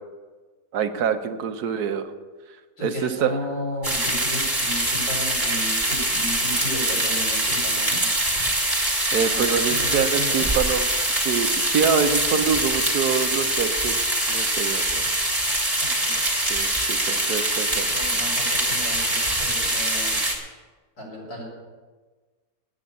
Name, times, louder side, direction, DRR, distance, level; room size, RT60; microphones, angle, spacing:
voice 1, 0.7-2.1 2.8-3.3 9.1-15.0 16.5-17.9, right 7 dB, 70° right, 8 dB, 1.3 m, -26 dB
voice 2, 2.8-8.0 9.3-10.5 15.8-16.2 17.9-20.2 21.0-21.4, left 1 dB, 85° left, -3 dB, 5.1 m, -34 dB
sound 1, 3.8-20.4, right 1 dB, 10° right, 2.3 m, -23 dB
9.6 x 9.2 x 8.5 m, 1.4 s
omnidirectional pair, 1.8 m